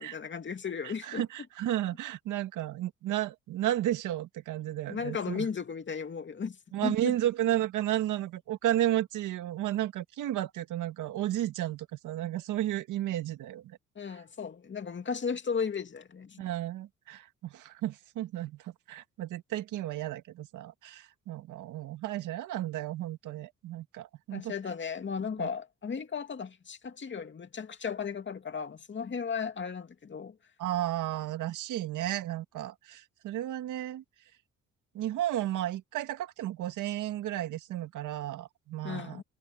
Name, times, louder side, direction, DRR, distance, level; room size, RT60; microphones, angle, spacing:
voice 1, 0.0-1.2 4.9-6.6 6.8-7.1 14.0-16.4 24.3-30.3 38.8-39.2, left 6 dB, 40° left, 2.6 m, -35 dB
voice 2, 0.8-5.5 6.7-13.8 16.4-24.5 25.4-25.5 30.6-34.0 34.9-39.2, right 13 dB, 85° right, 2.0 m, -33 dB
cardioid pair, 90°, 30 cm